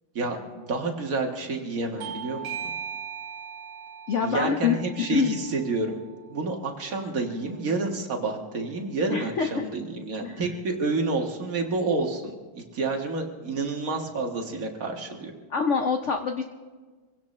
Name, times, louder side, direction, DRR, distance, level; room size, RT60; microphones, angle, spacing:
voice 1, 0.2-2.5 4.2-6.0 6.3-15.3, right 3 dB, 45° right, 2 dB, 1.8 m, -29 dB
Bell / Doorbell, 2.0-7.2, right 7 dB, 80° right, 1.8 m, -40 dB
voice 2, 4.1-5.4 9.1-9.7 10.2-10.4 15.5-16.4, left 6 dB, 90° left, 5 dB, 0.6 m, -25 dB
26.0 x 16.5 x 3.2 m, 1.4 s
omnidirectional pair, 2.3 m